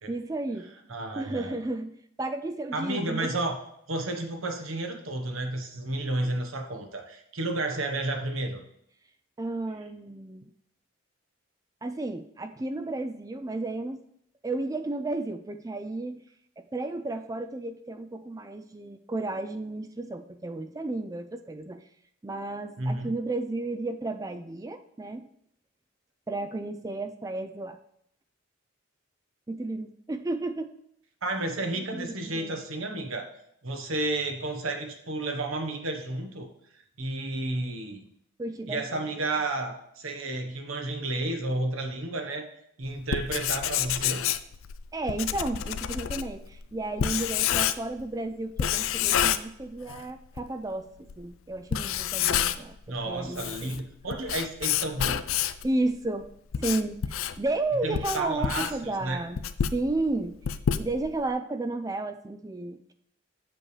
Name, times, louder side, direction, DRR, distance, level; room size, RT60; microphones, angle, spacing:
voice 1, 0.1-0.7 1.2-1.9 2.2-3.3 9.4-10.5 11.8-14.0 14.4-16.2 16.6-21.8 22.2-25.3 26.3-27.8 29.5-30.7 31.9-32.5 38.4-39.0 44.9-53.8 55.6-56.2 56.6-59.4 59.7-60.3 60.8-62.9, right 2 dB, 15° right, 9 dB, 0.3 m, -33 dB
voice 2, 0.9-1.6 2.7-3.6 3.9-8.6 22.8-23.2 31.2-33.3 33.6-36.5 37.0-38.1 38.7-42.5 42.8-44.2 52.9-55.2 57.8-59.2, right 2 dB, 75° right, 4 dB, 1.2 m, -31 dB
Writing, 43.0-48.1 48.6-50.0 50.4-50.5 51.1-51.2 51.6-52.8 53.2-55.7 56.2-61.3, left 9 dB, 75° left, 0.4 m, -28 dB
7.6 x 7.2 x 3.3 m, 0.71 s
head